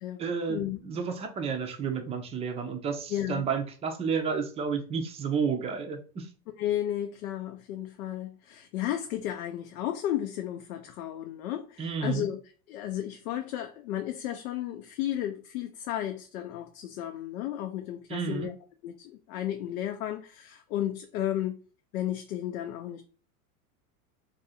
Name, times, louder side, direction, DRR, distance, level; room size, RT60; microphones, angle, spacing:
voice 1, 0.2-6.3 11.8-12.3 18.1-18.5, right 6 dB, 15° right, 0.4 m, -31 dB
voice 2, 3.1-3.4 6.6-12.4 12.7-18.5 18.8-21.6 21.9-23.0, left 12 dB, 85° left, 0.6 m, -33 dB
2.6 x 2.5 x 4.1 m
supercardioid pair, 130°, 42 cm